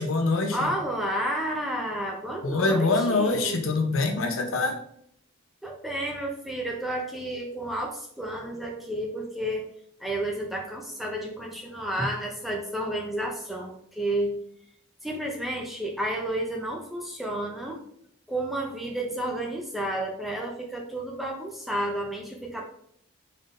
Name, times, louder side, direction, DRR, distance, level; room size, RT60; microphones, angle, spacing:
voice 1, 0.0-0.7 2.4-4.8, left 3 dB, 65° left, 3 dB, 0.7 m, -24 dB
voice 2, 0.5-3.7 5.6-9.7 10.0-14.4 15.0-17.8 18.3-22.6, right 1 dB, ahead, -1 dB, 0.5 m, -31 dB
4.0 x 3.6 x 2.5 m, 0.67 s
head